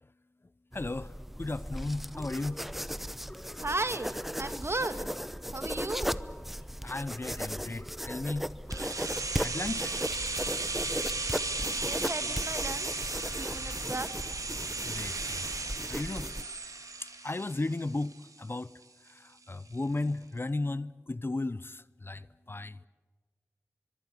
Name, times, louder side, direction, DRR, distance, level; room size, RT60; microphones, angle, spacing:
voice 1, 0.7-2.6 6.8-8.5 9.4-9.9 14.9-15.4 15.9-16.3 17.0-18.7 19.1-22.8, left 2 dB, 40° left, 0.7 m, -35 dB
sound 1, 0.7-16.4, equal, 5° right, 0.9 m, -37 dB
sound 2, 2.1-9.2, left 1 dB, 15° left, 3.4 m, -50 dB
voice 2, 3.6-4.1 4.4-5.1 5.5-6.2 11.7-13.1 13.3-14.1, right 2 dB, 45° right, 2.0 m, -35 dB
sound 3, 8.7-18.5 18.8-18.9, right 3 dB, 75° right, 3.0 m, -35 dB
24.5 x 23.5 x 8.4 m
cardioid pair, 40°, 6 cm